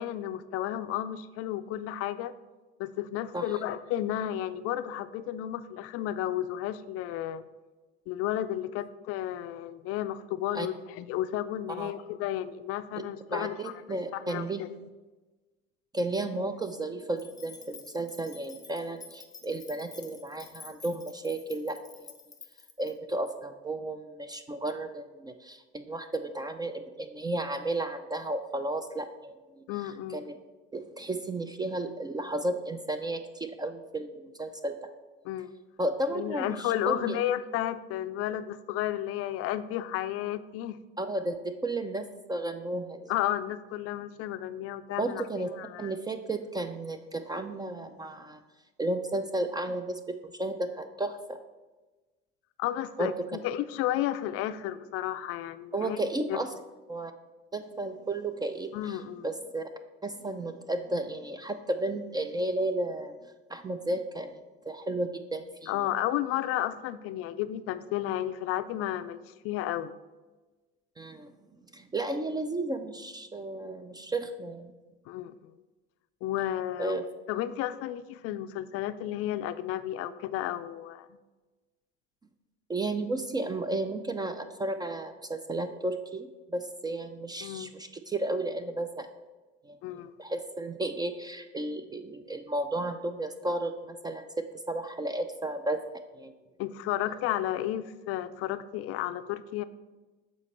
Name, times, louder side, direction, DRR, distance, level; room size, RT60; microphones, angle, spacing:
voice 1, 0.0-2.3 2.8-7.4 8.1-14.7 29.7-30.3 35.2-35.5 36.1-40.8 43.1-45.9 52.6-56.0 56.3-56.4 58.7-59.3 65.7-69.9 75.1-75.5 76.2-77.0 77.3-81.1 87.4-87.7 89.8-90.2 96.6-99.6, left 12 dB, 50° left, 12 dB, 0.4 m, -32 dB
voice 2, 13.3-14.7 15.9-22.1 22.8-29.6 30.1-30.4 30.7-34.9 35.8-37.2 41.0-43.1 45.0-45.5 45.8-48.4 48.8-51.4 53.0-53.3 55.7-56.5 56.9-57.1 57.5-59.7 60.0-63.1 63.5-65.9 71.0-71.3 71.7-74.7 76.8-77.0 82.7-89.1 89.6-89.8 90.2-95.8 96.1-96.3, right 2 dB, 15° right, 9 dB, 0.3 m, -33 dB
sound 1, 17.2-22.9, left 5 dB, 15° left, 0.7 m, -50 dB
7.0 x 4.1 x 4.2 m, 1.2 s
supercardioid pair, 90°, 30 cm